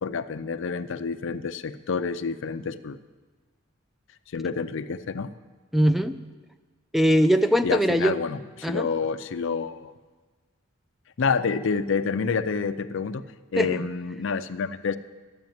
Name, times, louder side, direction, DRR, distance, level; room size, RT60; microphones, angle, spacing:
voice 1, 0.0-3.0 4.3-5.3 7.6-9.9 11.2-13.2 13.5-15.0, left 5 dB, 65° left, 12 dB, 0.5 m, -28 dB
voice 2, 5.7-6.2 6.9-8.2 8.6-8.9 13.6-13.9, equal, ahead, 10 dB, 0.4 m, -21 dB
10.5 x 8.0 x 9.2 m, 1.4 s
head